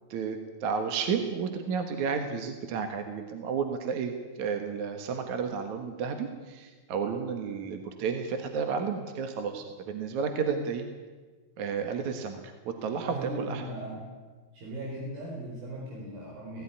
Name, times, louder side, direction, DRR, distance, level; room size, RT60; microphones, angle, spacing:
voice 1, 0.1-10.9 11.6-12.4 12.7-13.6, right 6 dB, 60° right, 6 dB, 2.5 m, -32 dB
voice 2, 13.0-14.1 14.5-16.6, right 1 dB, 75° right, -2 dB, 6.0 m, -38 dB
18.5 x 16.0 x 9.8 m, 1.3 s
omnidirectional pair, 4.2 m